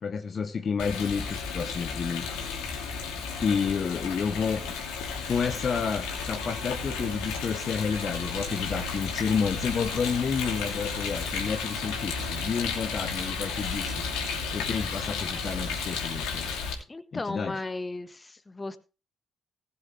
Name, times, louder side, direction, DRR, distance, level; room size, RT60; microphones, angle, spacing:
voice 1, 0.0-2.3 3.4-4.6 5.3-13.9 14.5-16.5 17.1-17.5, left 6 dB, 45° left, 9 dB, 0.9 m, -30 dB
Rain, 0.8-16.7, left 5 dB, 65° left, 2.8 m, -33 dB
sound 1, 6.4-16.2, right 5 dB, 80° right, 1.7 m, -45 dB
voice 2, 16.9-18.8, left 2 dB, 20° left, 12 dB, 1.4 m, -35 dB
19.5 x 7.1 x 3.3 m, 0.32 s
figure-of-eight pair, 40°, 0 cm